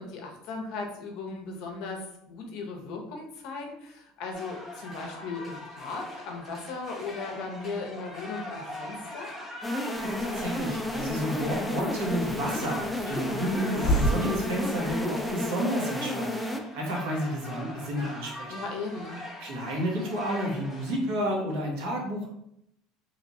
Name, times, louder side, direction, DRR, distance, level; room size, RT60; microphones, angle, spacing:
voice 1, 0.0-9.3 18.5-19.2, left 3 dB, 60° left, 2 dB, 0.8 m, -37 dB
sound 1, 4.3-21.0, left 1 dB, 15° right, 1.0 m, -42 dB
sound 2, 9.6-16.6, left 1 dB, ahead, 0.3 m, -32 dB
Hiss, 9.9-15.4, right 1 dB, 35° left, 1.0 m, -33 dB
voice 2, 10.0-16.4 16.7-18.5 19.4-22.3, equal, 80° right, -1 dB, 1.2 m, -31 dB
3.3 x 3.0 x 2.6 m, 0.76 s
cardioid pair, 145°, 0 cm